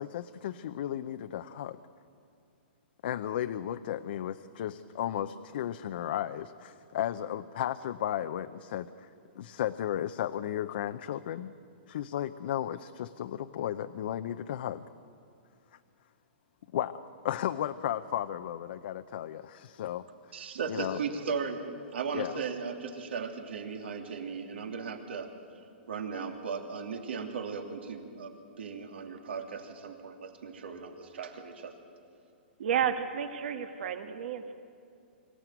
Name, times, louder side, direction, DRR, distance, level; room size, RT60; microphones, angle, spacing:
voice 1, 0.0-1.8 3.0-9.1 9.4-11.5 11.9-14.8 16.7-17.0 17.2-20.3 20.7-21.0 22.1-22.4, left 11 dB, 60° left, 9 dB, 0.7 m, -34 dB
voice 2, 20.3-21.7 21.9-25.3 25.9-31.7, right 5 dB, 85° right, 4 dB, 3.0 m, -37 dB
voice 3, 32.6-34.5, right 8 dB, 70° right, 7 dB, 1.5 m, -31 dB
25.0 x 15.5 x 9.3 m, 2.5 s
hypercardioid pair, 150°, 6 cm